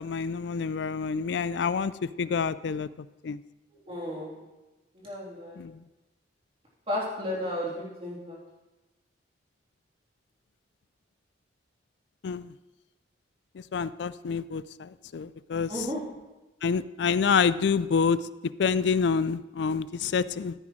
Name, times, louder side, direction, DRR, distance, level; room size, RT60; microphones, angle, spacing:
voice 1, 0.0-3.4 5.6-5.8 12.2-12.5 13.5-15.9 16.6-20.5, left 5 dB, 65° left, 17 dB, 0.4 m, -28 dB
voice 2, 3.7-4.4 4.9-5.6 6.9-8.4 15.7-16.0, left 1 dB, 30° right, -5 dB, 3.3 m, -34 dB
14.0 x 9.6 x 3.2 m, 1.1 s
head